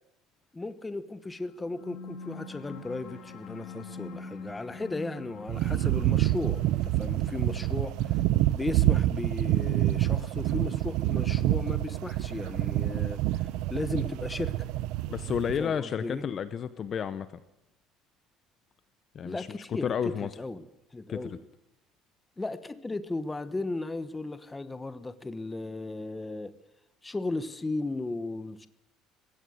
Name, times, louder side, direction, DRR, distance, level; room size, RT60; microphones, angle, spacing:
voice 1, 0.5-8.2 8.5-14.6 15.6-16.2 19.2-20.6 20.9-21.4 22.4-26.5 27.0-28.7, left 2 dB, 10° left, 13 dB, 1.1 m, -36 dB
sound 1, 1.4-12.4, left 4 dB, 50° left, 3.7 m, -46 dB
sound 2, 5.5-15.7, right 15 dB, 65° right, 0.8 m, -27 dB
voice 2, 15.1-17.3 19.1-20.3 21.1-21.4, left 8 dB, 30° left, 13 dB, 0.8 m, -31 dB
21.5 x 16.5 x 7.8 m, 0.87 s
cardioid pair, 175°, 0 cm